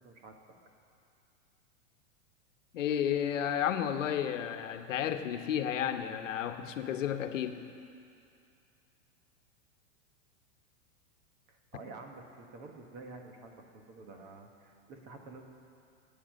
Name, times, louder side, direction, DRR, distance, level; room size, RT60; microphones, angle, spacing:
voice 1, 0.0-0.4 11.5-15.4, right 3 dB, 25° right, 3 dB, 1.2 m, -49 dB
voice 2, 2.7-7.6, left 9 dB, 85° left, 8 dB, 1.1 m, -32 dB
18.0 x 9.3 x 6.4 m, 2.5 s
supercardioid pair, 175°, 37 cm